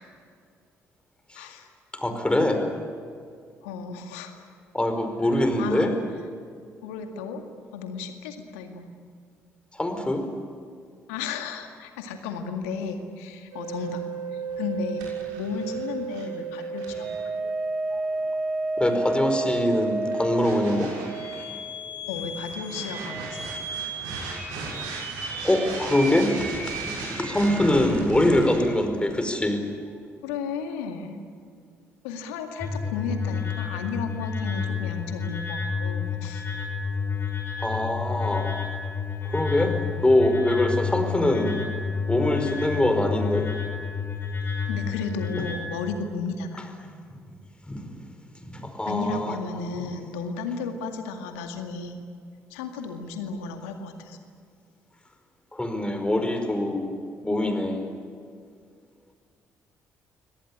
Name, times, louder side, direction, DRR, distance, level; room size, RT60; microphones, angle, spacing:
voice 1, 1.3-1.7 3.6-4.4 5.6-5.9 6.8-7.4 7.7-8.9 11.1-14.0 14.6-15.1 15.4-17.4 22.1-23.4 30.2-31.2 32.0-36.5 44.7-46.7 48.9-52.0 52.5-54.2, left 5 dB, 80° left, 5 dB, 2.1 m, -33 dB
voice 2, 1.9-2.6 4.7-5.9 9.7-10.3 17.9-18.0 18.8-20.9 25.4-26.5 26.8-29.7 37.6-38.5 39.2-41.7 42.1-43.5 47.7-47.9 48.4-49.3 55.5-56.9 57.2-57.9, left 1 dB, 15° left, 6 dB, 5.1 m, -24 dB
sound 1, 13.5-28.6, right 3 dB, 75° right, 6.5 m, -32 dB
sound 2, 32.6-45.5, left 6 dB, 35° left, 6.0 m, -30 dB
25.0 x 18.0 x 10.0 m, 2.2 s
hypercardioid pair, 45°, 7 cm